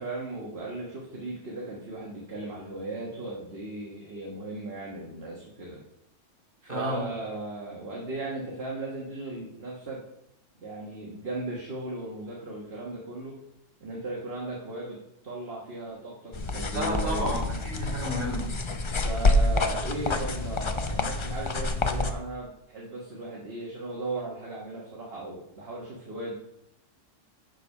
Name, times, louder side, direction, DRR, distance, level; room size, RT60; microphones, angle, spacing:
voice 1, 0.0-5.8 6.6-10.0 10.6-13.4 13.8-15.0 15.2-17.4 19.0-26.3, right 2 dB, 50° right, -3 dB, 1.5 m, -37 dB
voice 2, 6.7-7.0 16.7-18.5, equal, 30° right, -4 dB, 2.7 m, -31 dB
sound 1, 16.3-22.1, left 2 dB, 45° left, 0.4 m, -27 dB
6.5 x 6.5 x 5.3 m, 0.80 s
omnidirectional pair, 1.3 m